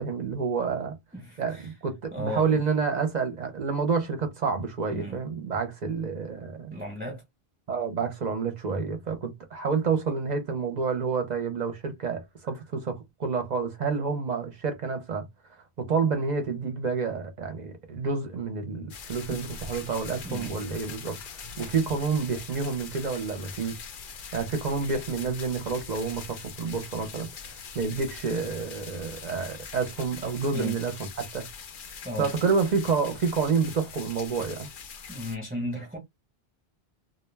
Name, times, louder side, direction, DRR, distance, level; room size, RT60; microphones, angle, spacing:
voice 1, 0.0-1.0 1.4-6.7 7.7-15.3 15.8-21.2 21.6-23.8 24.3-27.3 27.7-31.5 32.2-34.7, right 5 dB, 50° right, 0.7 m, -29 dB
voice 2, 1.1-1.7 2.1-2.6 4.9-5.2 6.7-7.2 19.3-19.4 20.2-20.6 30.5-30.8 32.0-32.3 35.1-36.0, left 1 dB, 10° right, 0.8 m, -35 dB
sound 1, 18.9-35.4, left 6 dB, 60° left, 0.7 m, -42 dB
2.3 x 2.1 x 3.2 m
omnidirectional pair, 1.0 m